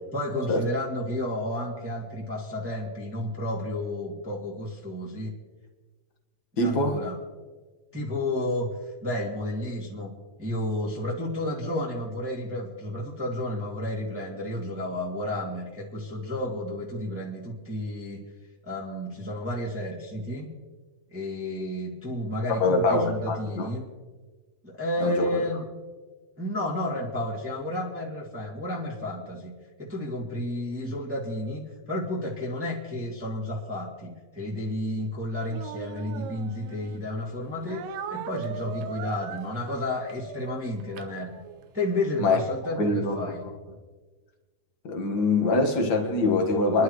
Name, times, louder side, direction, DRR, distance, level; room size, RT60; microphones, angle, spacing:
voice 1, 0.1-5.3 6.5-7.2 7.9-8.7 9.0-10.1 10.4-18.2 18.6-20.5 21.1-23.9 24.6-25.6 26.4-29.5 29.8-31.6 31.9-41.4 41.7-43.4, left 1 dB, 5° right, -4 dB, 1.9 m, -31 dB
voice 2, 6.6-7.0 22.6-23.7 25.0-25.4 42.2-42.4 42.8-43.3 44.8-46.8, left 2 dB, 40° left, 2 dB, 1.6 m, -24 dB
Speech, 35.5-37.0 37.7-41.7, right 9 dB, 85° right, 2.4 m, -40 dB
29.0 x 11.5 x 3.2 m, 1.4 s
omnidirectional pair, 4.0 m